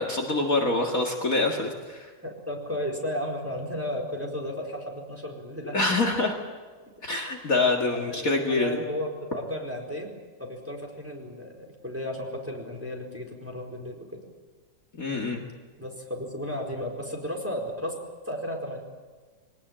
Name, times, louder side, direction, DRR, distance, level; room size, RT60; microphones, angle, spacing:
voice 1, 0.0-2.1 5.7-6.3 7.0-8.8 15.0-15.4, left 2 dB, 45° left, 1 dB, 2.4 m, -25 dB
voice 2, 2.2-5.8 7.9-10.1 10.4-14.2 15.8-17.9 18.3-18.8, left 1 dB, 5° right, 0 dB, 4.5 m, -34 dB
23.5 x 19.0 x 9.0 m, 1.4 s
omnidirectional pair, 2.1 m